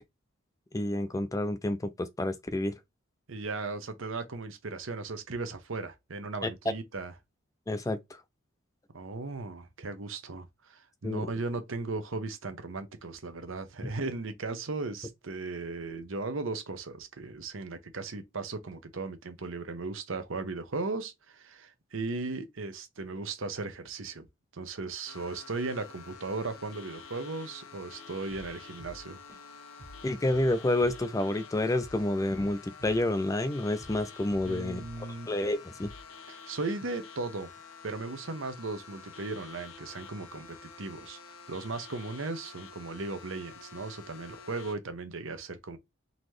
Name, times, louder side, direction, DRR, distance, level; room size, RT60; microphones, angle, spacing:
voice 1, 0.7-2.7 7.7-8.2 11.0-11.3 30.0-34.8 35.3-35.9, left 1 dB, 15° left, 0.4 m, -29 dB
voice 2, 3.3-7.1 8.9-24.3 24.5-29.2 34.4-35.3 36.3-37.5 37.8-45.8, right 3 dB, 75° right, 0.9 m, -37 dB
sound 1, 25.1-44.8, left 5 dB, 90° left, 0.8 m, -49 dB
Drum kit / Drum, 28.3-28.5 28.8-29.5 29.8-30.0 30.3-33.5 33.8-35.0 35.3-35.5 35.8-36.1, equal, 55° right, 1.6 m, -50 dB
4.0 x 2.9 x 3.2 m
head